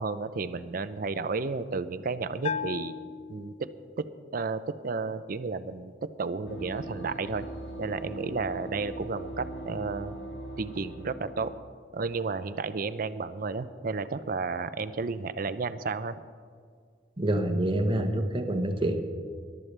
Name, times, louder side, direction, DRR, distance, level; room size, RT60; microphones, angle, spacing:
voice 1, 0.0-2.9 3.3-3.7 4.0-4.1 4.3-7.4 7.8-10.2 10.6-11.5 11.9-16.2, right 4 dB, 50° right, 13 dB, 0.5 m, -32 dB
Bell, 2.4-4.1, left 6 dB, 35° left, 0.3 m, -36 dB
sound 1, 6.5-11.6, right 1 dB, 80° left, 1.7 m, -40 dB
voice 2, 17.2-19.1, right 1 dB, 30° right, 5 dB, 1.1 m, -27 dB
21.5 x 12.0 x 3.3 m, 2.1 s
head